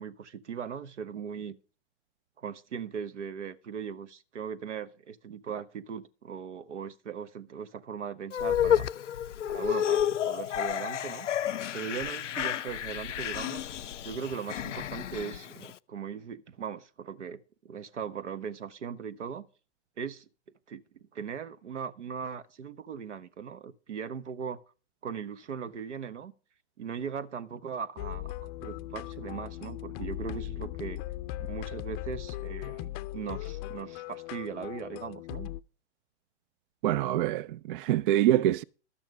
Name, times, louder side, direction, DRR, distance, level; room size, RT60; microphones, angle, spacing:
voice 1, 0.0-1.6 2.4-8.9 9.5-11.3 11.7-13.7 14.0-17.4 17.6-19.5 20.0-20.3 20.7-20.8 21.1-24.6 25.0-26.3 26.8-31.0 31.4-35.5, right 7 dB, 80° right, 1.2 m, -39 dB
sound 1, 8.3-15.7, left 10 dB, 90° left, 0.6 m, -30 dB
sound 2, 28.0-35.6, left 15 dB, 35° left, 0.5 m, -38 dB
voice 2, 36.8-38.6, right 12 dB, 50° right, 0.5 m, -25 dB
13.0 x 8.9 x 4.8 m
hypercardioid pair, 115°, 35 cm